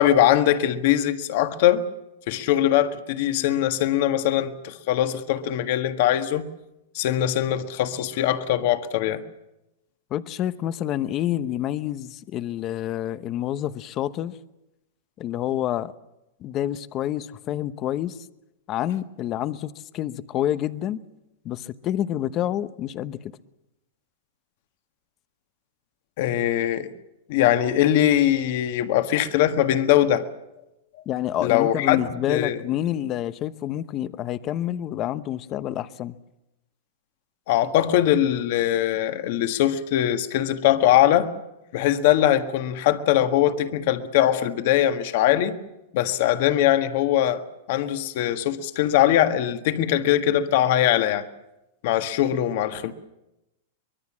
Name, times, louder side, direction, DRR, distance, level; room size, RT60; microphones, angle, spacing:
voice 1, 0.0-1.8 2.3-6.5 6.9-9.2 26.2-26.9 27.3-30.2 31.4-32.0 32.3-32.6 37.5-41.3 41.7-45.6 45.9-47.4 47.7-51.2 51.8-52.9, left 12 dB, 55° left, 1.6 m, -21 dB
voice 2, 10.1-14.4 15.2-15.9 16.4-18.2 18.7-21.0 21.4-23.2 31.1-36.1, left 12 dB, 30° left, 0.9 m, -28 dB
24.0 x 21.5 x 7.4 m
supercardioid pair, 155°, 0 cm